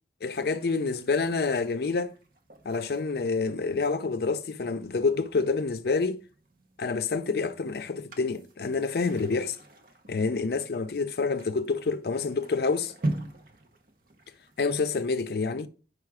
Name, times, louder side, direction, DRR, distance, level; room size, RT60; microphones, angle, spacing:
voice 1, 0.2-2.1 2.6-6.2 6.8-9.6 10.1-12.9 14.6-15.7, left 4 dB, 60° left, 0.5 m, -28 dB
sound 1, 0.6-14.8, right 1 dB, 50° right, 0.8 m, -43 dB
4.8 x 4.8 x 4.7 m
head